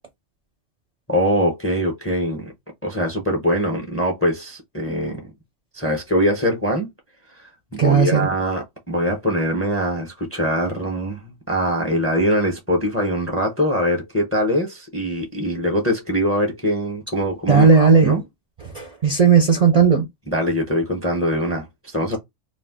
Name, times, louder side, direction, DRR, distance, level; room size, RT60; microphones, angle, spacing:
voice 1, 1.1-2.5 2.8-5.3 5.7-6.9 7.7-18.2 20.3-22.2, equal, 15° left, 0.5 m, -22 dB
voice 2, 7.8-8.3 17.5-18.2 18.7-20.0, right 6 dB, 50° right, 0.5 m, -15 dB
2.4 x 2.2 x 3.4 m
omnidirectional pair, 1.2 m